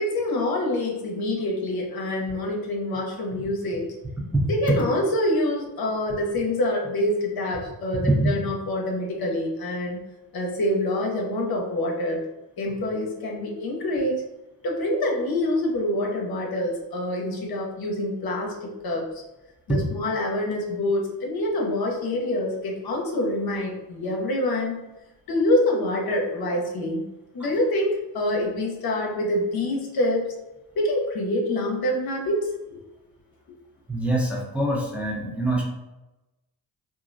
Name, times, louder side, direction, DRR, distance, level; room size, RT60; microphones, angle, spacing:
voice 1, 0.0-3.9 4.5-10.0 10.3-12.2 12.6-14.2 14.6-19.1 19.7-24.8 25.3-27.0 27.3-30.2 30.8-32.8, left 1 dB, 55° left, -1 dB, 0.8 m, -26 dB
voice 2, 33.9-35.7, right 1 dB, 5° right, -3 dB, 0.8 m, -24 dB
2.9 x 2.5 x 2.6 m, 0.99 s
hypercardioid pair, 40°, 45 cm